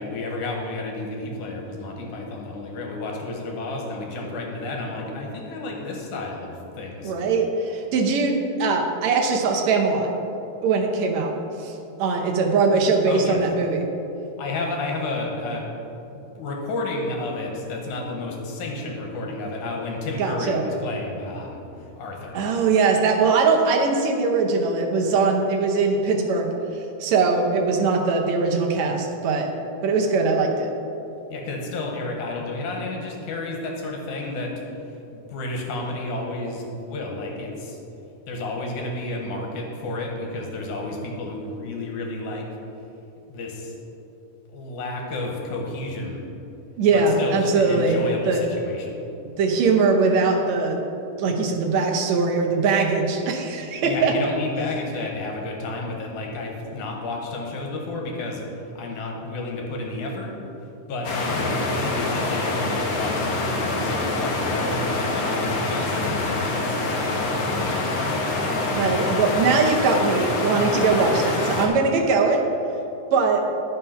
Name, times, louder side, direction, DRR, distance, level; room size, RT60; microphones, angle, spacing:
voice 1, 0.0-7.1 13.1-13.4 14.4-15.7 16.1-21.6 22.0-22.4 31.3-34.5 35.1-37.8 38.3-42.5 43.3-43.7 44.5-46.2 46.9-49.0 53.8-58.4 58.8-60.3 60.8-67.7, left 2 dB, 80° left, 0 dB, 2.6 m, -31 dB
voice 2, 7.0-10.1 10.6-11.3 11.6-11.7 12.0-13.8 20.2-20.6 22.3-26.5 27.0-29.5 29.8-30.7 46.8-48.4 49.4-50.8 51.2-54.1 68.7-72.4 73.1-73.4, right 4 dB, 70° right, 2 dB, 1.9 m, -21 dB
sound 1, 61.0-71.7, left 2 dB, 60° left, 1.3 m, -25 dB
10.5 x 5.5 x 5.6 m, 2.9 s
omnidirectional pair, 3.5 m